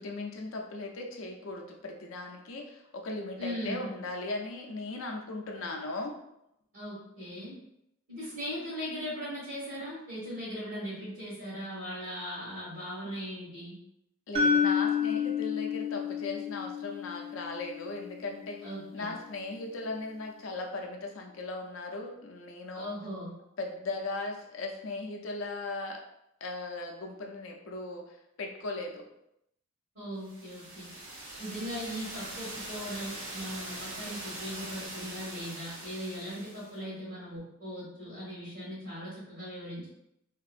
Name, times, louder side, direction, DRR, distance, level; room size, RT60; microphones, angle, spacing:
voice 1, 0.0-6.1 14.3-18.6 18.9-22.9 23.6-26.0 26.4-29.0, left 2 dB, 65° left, 2 dB, 0.4 m, -38 dB
voice 2, 3.4-3.9 6.7-7.6 8.1-13.8 18.6-19.1 22.7-23.3 29.9-30.9 31.4-39.9, equal, 70° right, -11 dB, 1.4 m, -39 dB
sound 1, 14.3-18.4, left 6 dB, 25° right, 0.3 m, -30 dB
sound 2, 30.2-36.8, right 2 dB, 90° right, 0.7 m, -42 dB
2.9 x 2.5 x 2.4 m, 0.81 s
head